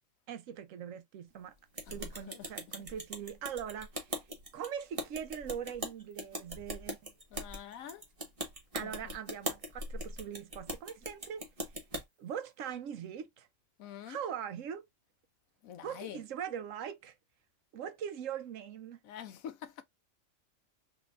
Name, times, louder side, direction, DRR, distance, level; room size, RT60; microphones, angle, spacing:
voice 1, 0.3-1.5 1.9-4.2 4.5-7.1 8.7-11.4 12.2-13.5 14.1-14.8 15.8-17.1 17.7-19.0, right 8 dB, 75° right, 1.0 m, -41 dB
sound 1, 1.8-12.0, right 1 dB, 25° right, 1.2 m, -41 dB
voice 2, 2.0-2.5 7.3-8.0 8.8-9.0 13.8-14.2 15.6-16.2 19.0-19.8, left 9 dB, 90° left, 1.1 m, -46 dB
3.8 x 3.4 x 2.4 m
omnidirectional pair, 1.4 m